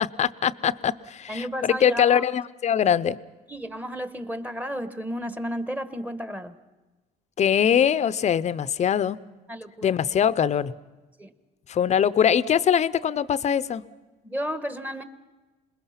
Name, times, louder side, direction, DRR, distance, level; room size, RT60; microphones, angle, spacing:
voice 1, 0.0-3.2 7.4-9.2 9.8-10.7 11.7-13.8, left 8 dB, 40° left, 16 dB, 0.7 m, -22 dB
voice 2, 1.3-2.3 3.5-6.5 9.5-10.0 11.2-11.3 14.2-15.0, equal, 10° right, 11 dB, 1.3 m, -32 dB
26.5 x 21.0 x 5.8 m, 1.2 s
cardioid pair, 110°, 17 cm